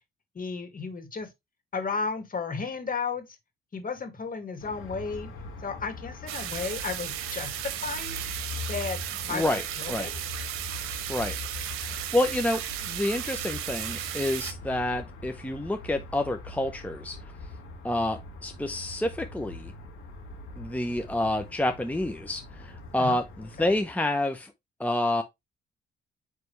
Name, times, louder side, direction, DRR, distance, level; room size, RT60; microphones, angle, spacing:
voice 1, 0.3-1.3 1.7-3.2 3.7-5.3 5.6-8.2 8.7-9.0 9.2-9.4 9.8-10.2 23.0-23.2 23.6-23.8, left 5 dB, 40° left, 2.2 m, -33 dB
sound 1, 4.6-23.8, left 3 dB, 85° left, 1.9 m, -42 dB
Shower Running Continous, 6.3-14.5, right 12 dB, 85° right, 0.7 m, -35 dB
voice 2, 9.3-10.1 11.1-11.4 11.9-17.2 17.8-19.7 20.6-24.5 24.8-25.2, left 1 dB, 5° left, 0.8 m, -28 dB
9.1 x 3.4 x 3.2 m
supercardioid pair, 65°, 21 cm